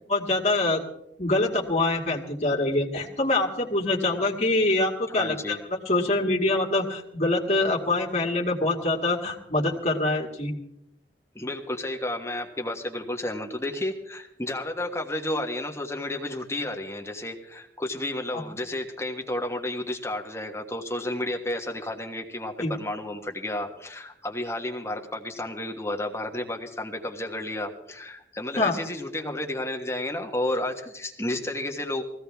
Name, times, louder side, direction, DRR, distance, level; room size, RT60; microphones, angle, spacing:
voice 1, 0.1-0.8 1.2-5.6 5.9-10.5 22.6-22.7 28.6-28.7, left 2 dB, 40° left, -2 dB, 2.3 m, -24 dB
voice 2, 5.1-5.6 11.3-32.0, left 1 dB, 15° left, 2 dB, 1.3 m, -32 dB
20.0 x 16.0 x 3.5 m, 0.79 s
head